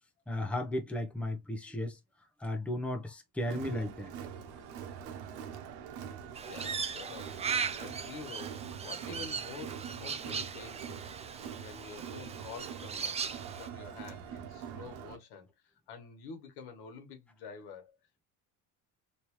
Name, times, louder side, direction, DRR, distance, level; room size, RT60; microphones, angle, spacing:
voice 1, 0.3-2.0 2.4-4.1, left 1 dB, 5° left, 0.8 m, -35 dB
Crowd, 3.4-15.2, right 8 dB, 85° right, 0.9 m, -44 dB
Crow, 6.4-13.7, right 6 dB, 20° right, 0.3 m, -38 dB
voice 2, 6.5-11.1 11.6-13.2 13.5-18.0, left 5 dB, 85° left, 1.5 m, -48 dB
3.4 x 2.9 x 3.0 m
cardioid pair, 130°, 38 cm